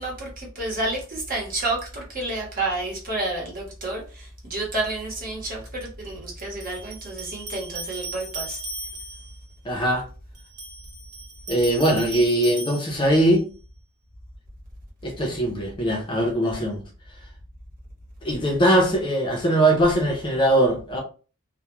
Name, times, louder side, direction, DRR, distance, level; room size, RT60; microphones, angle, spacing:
voice 1, 0.0-8.6, right 2 dB, 40° right, 1.0 m, -30 dB
sound 1, 5.3-5.4 6.6-9.4 10.3-13.4, right 2 dB, 85° right, 0.7 m, -37 dB
voice 2, 9.7-10.0 11.5-13.5 15.0-16.8 18.2-21.0, right 1 dB, 20° left, 0.5 m, -21 dB
2.3 x 2.1 x 3.0 m
head